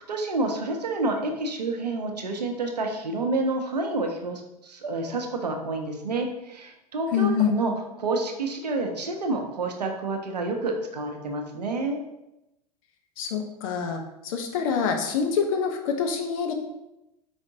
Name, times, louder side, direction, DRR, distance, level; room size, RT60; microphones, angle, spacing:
voice 1, 0.1-7.7 8.0-12.0, right 2 dB, 85° right, 3 dB, 0.7 m, -29 dB
voice 2, 7.1-7.5 13.2-16.5, left 6 dB, 55° left, 5 dB, 0.7 m, -26 dB
4.8 x 3.5 x 2.7 m, 0.91 s
figure-of-eight pair, 90°, 20 cm